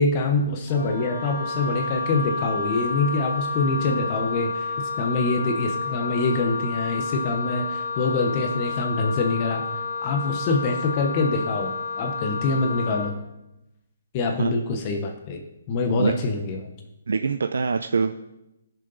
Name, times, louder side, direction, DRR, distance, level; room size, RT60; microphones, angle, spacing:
voice 1, 0.0-9.7 10.0-13.2 14.1-16.7, left 3 dB, 20° left, 4 dB, 0.8 m, -25 dB
Wind instrument woodwind instrument, 0.7-13.2, left 4 dB, 40° left, 2.0 m, -30 dB
voice 2, 17.1-18.2, right 5 dB, 85° right, 7 dB, 0.6 m, -23 dB
19.0 x 6.7 x 4.0 m, 0.93 s
hypercardioid pair, 175°, 0 cm